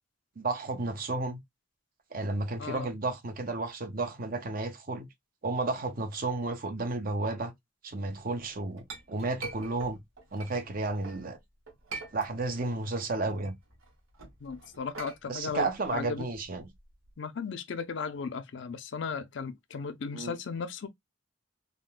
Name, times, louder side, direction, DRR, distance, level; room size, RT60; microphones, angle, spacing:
voice 1, 0.4-1.4 2.1-5.1 5.4-7.5 7.8-10.0 10.3-11.4 12.1-13.5 15.3-16.7 20.1-20.4, right 3 dB, 45° right, 0.6 m, -32 dB
Chink clink, 8.4-11.2 11.7-12.7 13.0-17.1, right 3 dB, 90° right, 1.2 m, -45 dB
voice 2, 14.4-15.7 15.9-16.2 17.2-20.9, left 5 dB, 65° left, 0.5 m, -36 dB
3.7 x 2.2 x 2.3 m
head